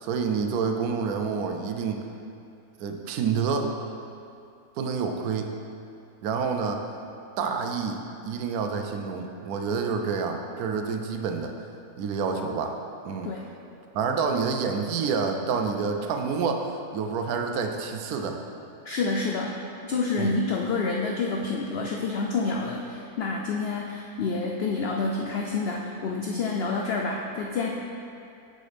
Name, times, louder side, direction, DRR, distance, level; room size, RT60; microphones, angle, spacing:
voice 1, 0.0-2.0 2.8-3.7 4.8-5.5 6.2-6.8 7.4-11.5 12.0-12.8 13.0-13.3 13.9-18.4 20.2-20.3, right 5 dB, 80° right, 4 dB, 1.1 m, -28 dB
voice 2, 18.9-19.6 19.8-27.8, left 4 dB, 75° left, 0 dB, 0.5 m, -28 dB
8.4 x 5.2 x 3.4 m, 2.6 s
omnidirectional pair, 1.6 m